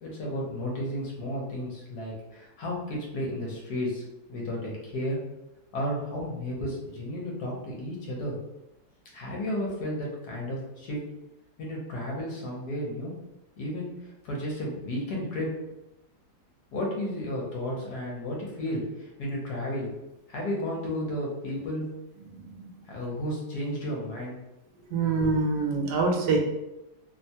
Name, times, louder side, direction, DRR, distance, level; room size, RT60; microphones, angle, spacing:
voice 1, 0.0-5.2 5.7-8.4 9.1-11.0 11.6-13.1 13.6-15.5 16.7-19.9 20.3-21.9 22.8-24.4 25.0-25.2, left 1 dB, 70° left, -2 dB, 1.3 m, -33 dB
voice 2, 24.9-26.4, right 3 dB, 75° right, 1 dB, 1.2 m, -24 dB
3.1 x 2.2 x 2.7 m, 0.96 s
omnidirectional pair, 1.8 m